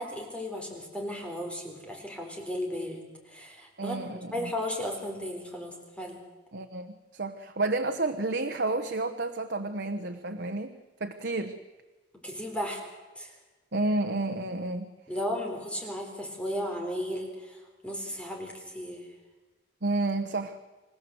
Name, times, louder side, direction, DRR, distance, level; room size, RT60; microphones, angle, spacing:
voice 1, 0.0-4.0 4.3-6.2 12.2-12.8 13.2-13.3 15.1-17.6 17.8-19.1, equal, 5° left, 1 dB, 3.9 m, -35 dB
voice 2, 3.8-4.5 6.5-11.6 13.7-14.9 19.8-20.6, right 2 dB, 65° right, 7 dB, 1.1 m, -31 dB
27.0 x 16.0 x 8.0 m, 1.2 s
head